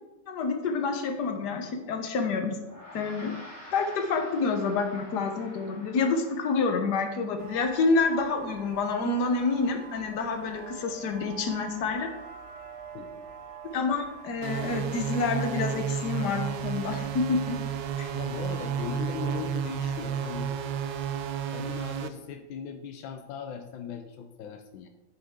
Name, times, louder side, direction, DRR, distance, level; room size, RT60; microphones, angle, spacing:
voice 1, 0.3-2.5 2.9-3.3 3.7-12.1 13.7-17.6 18.0-18.1, left 4 dB, 60° left, 4 dB, 1.5 m, -28 dB
Gong, 2.6-12.2, left 1 dB, 10° left, 2.4 m, -51 dB
sound 1, 7.4-21.5, right 9 dB, 55° right, 0.8 m, -45 dB
voice 2, 12.9-13.3 18.1-20.5 21.5-24.9, left 7 dB, 85° left, 6 dB, 1.4 m, -38 dB
sound 2, 14.4-22.1, right 8 dB, 75° right, 1.2 m, -32 dB
8.8 x 6.5 x 3.7 m, 1.0 s
omnidirectional pair, 2.1 m